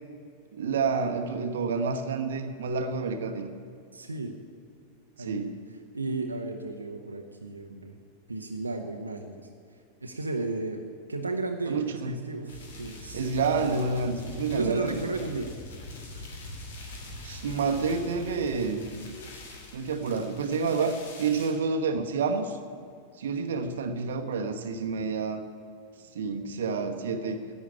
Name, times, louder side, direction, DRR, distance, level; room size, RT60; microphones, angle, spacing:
voice 1, 0.5-3.5 5.2-5.6 11.7-12.2 13.1-15.1 16.2-16.3 17.2-18.9 19.7-22.6 23.2-25.4 26.1-27.4, right 4 dB, 60° right, 6 dB, 1.1 m, -29 dB
voice 2, 3.9-4.4 5.2-5.5 5.9-8.0 8.3-10.8 11.1-13.9 14.5-15.5, right 2 dB, 80° right, 3 dB, 0.9 m, -34 dB
sound 1, 12.5-21.5, left 1 dB, 60° left, 2.6 m, -43 dB
11.0 x 8.5 x 9.6 m, 2.3 s
figure-of-eight pair, 90°, 0 cm